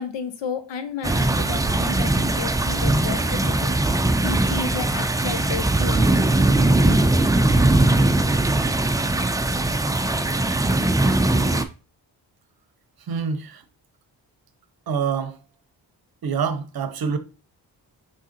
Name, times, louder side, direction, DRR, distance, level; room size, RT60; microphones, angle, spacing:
voice 1, 0.0-3.8 4.2-6.1, left 5 dB, 75° left, 0.8 m, -32 dB
sound 1, 1.0-11.6, right 2 dB, 10° right, 0.4 m, -20 dB
voice 2, 13.1-13.6 14.9-15.4 16.2-17.2, right 6 dB, 55° right, 0.7 m, -26 dB
4.8 x 3.6 x 2.8 m
supercardioid pair, 45°, 44 cm